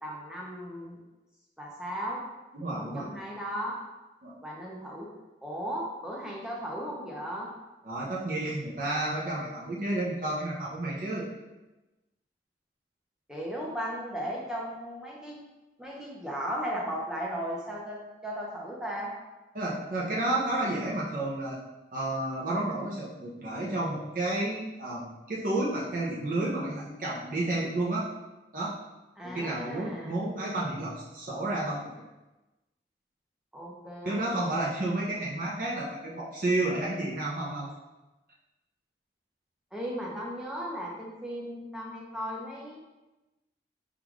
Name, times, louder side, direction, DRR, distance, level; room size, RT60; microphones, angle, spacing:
voice 1, 0.0-1.0 1.6-2.2 2.9-3.8 4.4-5.1 5.4-7.5 13.3-15.4 15.8-19.1 29.2-30.2 33.5-34.6 39.7-42.8, equal, 5° right, -4 dB, 0.7 m, -36 dB
voice 2, 2.5-3.1 4.2-4.4 7.8-11.3 19.5-21.6 21.9-28.1 28.5-28.7 29.2-32.0 34.0-37.7, right 2 dB, 50° right, -5 dB, 0.7 m, -31 dB
3.7 x 2.5 x 4.6 m, 1.1 s
head